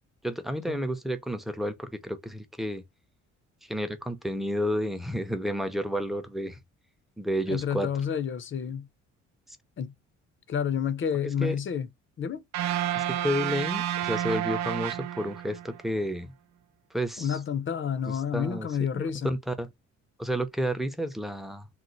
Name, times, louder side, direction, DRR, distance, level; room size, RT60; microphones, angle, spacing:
voice 1, 0.2-2.8 3.6-6.6 7.2-7.9 9.5-9.6 11.2-11.6 12.9-16.3 16.9-17.4 18.1-18.7 18.9-19.7 20.2-21.7, equal, ahead, 0.6 m, -31 dB
voice 2, 7.5-8.9 9.8-9.9 10.5-11.9 12.2-12.4 17.2-19.4, left 7 dB, 40° left, 0.6 m, -29 dB
sound 1, 12.5-15.8, right 11 dB, 65° right, 0.5 m, -30 dB
3.0 x 2.0 x 3.9 m
cardioid pair, 90°, 30 cm